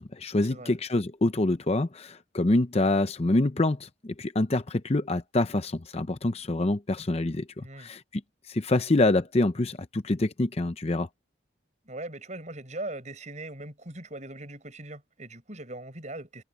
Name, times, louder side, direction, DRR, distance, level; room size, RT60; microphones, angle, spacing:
voice 1, 0.0-8.0 8.5-11.1, left 2 dB, 35° left, 0.6 m, -26 dB
voice 2, 7.6-7.9 11.8-16.4, right 2 dB, 40° right, 7.3 m, -40 dB
head